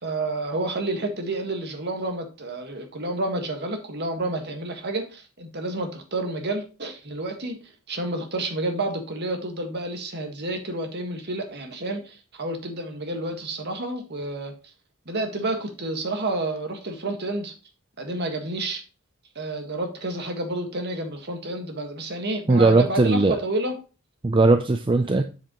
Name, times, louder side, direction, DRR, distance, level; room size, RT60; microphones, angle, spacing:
voice 1, 0.0-7.6 7.9-14.5 15.0-17.5 18.0-18.8 19.3-23.8, right 2 dB, 50° right, 1.7 m, -30 dB
voice 2, 22.5-23.4 24.2-25.2, right 3 dB, 25° right, 0.5 m, -18 dB
7.5 x 7.4 x 3.0 m
head